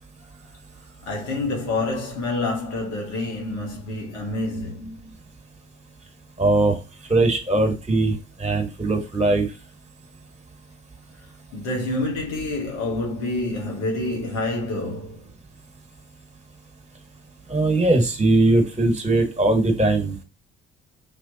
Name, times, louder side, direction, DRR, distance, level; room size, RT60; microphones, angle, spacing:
voice 1, 1.0-5.2 11.5-15.3, left 2 dB, 75° left, 1.8 m, -28 dB
voice 2, 6.4-6.8 7.1-9.5 17.5-20.1, right 2 dB, 20° right, 1.7 m, -20 dB
5.7 x 3.1 x 2.8 m
hypercardioid pair, 50°, 30 cm